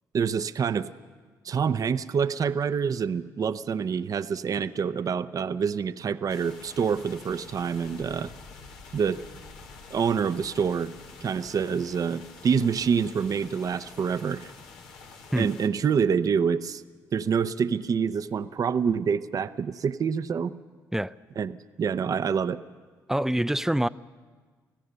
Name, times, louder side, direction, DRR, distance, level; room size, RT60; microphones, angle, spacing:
voice 1, 0.1-0.9 1.4-8.3 8.9-9.2 9.9-10.9 11.2-14.5 15.3-16.8 17.1-20.5 21.4-22.6, right 6 dB, 50° right, 13 dB, 0.7 m, -26 dB
sound 1, 6.3-15.7, left 4 dB, 90° left, 1.6 m, -47 dB
voice 2, 23.1-23.9, right 1 dB, 5° right, 16 dB, 0.5 m, -25 dB
25.0 x 16.0 x 6.8 m, 1.5 s
supercardioid pair, 60°, 8 cm